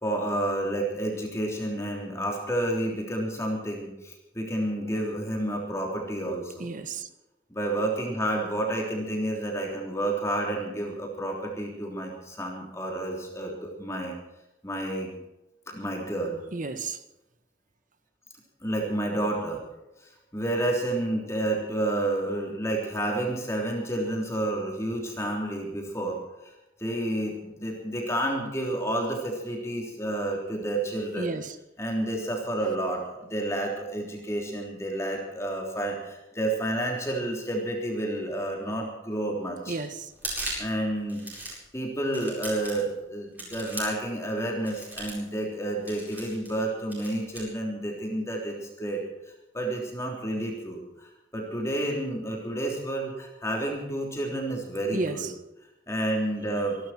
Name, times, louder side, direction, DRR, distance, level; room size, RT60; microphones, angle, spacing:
voice 1, 0.0-6.7 7.5-14.2 14.6-15.2 15.7-16.4 18.6-19.6 20.0-26.5 26.8-31.3 31.8-39.8 40.6-41.2 41.7-49.0 49.5-55.3 55.9-56.8, right 1 dB, 15° left, 3.4 m, -30 dB
voice 2, 6.6-7.1 16.5-17.0 31.2-31.5 39.7-40.1 54.9-55.3, right 3 dB, 45° right, 1.5 m, -32 dB
sound 1, 40.1-40.7 41.1-41.7 42.1-42.9 43.4-44.1 44.6-45.3 45.9-46.6 46.9-47.4, right 1 dB, 10° right, 8.0 m, -37 dB
26.0 x 12.0 x 4.5 m
head